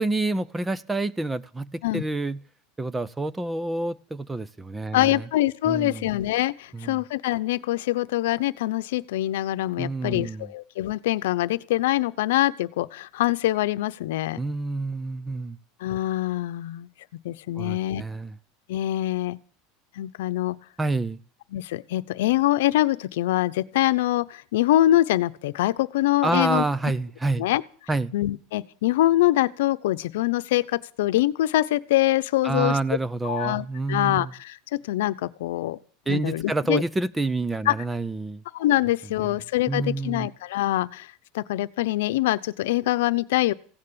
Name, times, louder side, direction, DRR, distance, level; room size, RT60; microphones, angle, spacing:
voice 1, 0.0-2.4 2.8-5.3 5.7-6.1 6.7-7.0 9.8-10.5 14.4-15.6 17.6-18.3 20.8-21.2 26.2-27.4 27.9-28.1 32.4-34.3 36.1-38.4 39.2-39.4 39.7-40.3, right 2 dB, 10° right, 0.6 m, -28 dB
voice 2, 4.9-14.4 15.8-16.9 17.2-18.0 18.7-19.4 20.0-20.6 21.5-26.6 27.4-27.6 28.1-32.8 33.2-34.6 34.8-35.8 36.1-36.8 37.7-37.8 38.5-41.1 41.3-43.5, left 15 dB, 85° left, 0.8 m, -24 dB
16.0 x 9.7 x 8.8 m
supercardioid pair, 135°, 0 cm